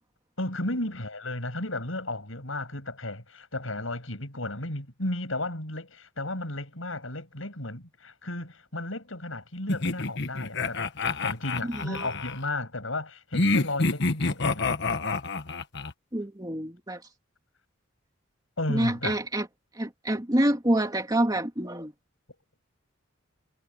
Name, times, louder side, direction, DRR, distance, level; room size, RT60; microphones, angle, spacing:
voice 1, 0.4-14.7 18.6-19.2, left 2 dB, 75° left, 7.6 m, -34 dB
sound 1, 9.7-12.4 13.3-15.9, left 3 dB, 60° left, 1.4 m, -27 dB
voice 2, 16.1-17.0 18.7-19.5 19.8-21.9, right 1 dB, 20° right, 2.7 m, -27 dB
head